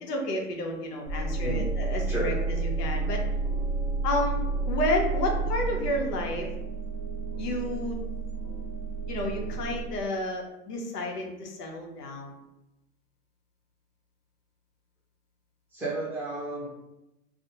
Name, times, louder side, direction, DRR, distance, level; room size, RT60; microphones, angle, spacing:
voice 1, 0.0-3.2 4.0-4.3 4.6-6.5 7.4-8.0 9.1-12.3, left 1 dB, 75° left, 1 dB, 0.9 m, -31 dB
sound 1, 1.1-9.8, right 3 dB, 45° left, 1.2 m, -30 dB
voice 2, 15.7-16.7, right 2 dB, 5° right, -9 dB, 0.6 m, -32 dB
2.4 x 2.1 x 2.8 m, 0.93 s
hypercardioid pair, 125°, 48 cm